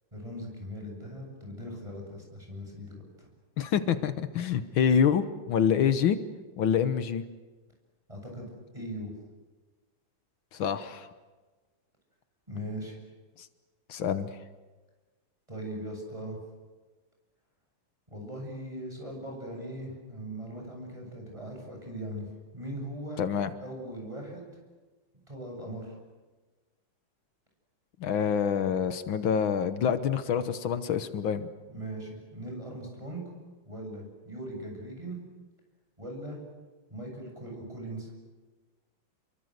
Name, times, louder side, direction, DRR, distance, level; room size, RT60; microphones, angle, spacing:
voice 1, 0.1-3.3 8.1-8.4 8.7-9.1 12.5-13.0 15.5-16.4 18.1-22.3 22.5-23.2 23.6-24.4 25.3-26.0 31.7-33.2 33.7-35.2 36.0-36.4 36.9-38.1, right 1 dB, 15° right, 1 dB, 7.9 m, -39 dB
voice 2, 3.6-6.2 6.6-7.2 10.5-11.1 13.4-13.5 13.9-14.3 23.2-23.5 28.0-31.5, left 7 dB, 80° left, 11 dB, 1.8 m, -26 dB
29.5 x 23.0 x 8.1 m, 1.3 s
omnidirectional pair, 2.1 m